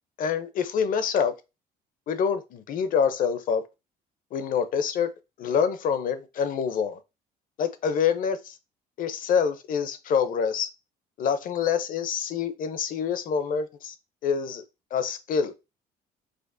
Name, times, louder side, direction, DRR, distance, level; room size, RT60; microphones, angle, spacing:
voice 1, 0.2-1.3 2.1-3.6 4.3-5.1 5.4-7.0 7.6-8.6 9.0-10.7 11.2-13.9 14.2-14.6 14.9-15.5, left 7 dB, 55° left, 0.6 m, -26 dB
5.0 x 2.0 x 2.6 m
cardioid pair, 110°, 17 cm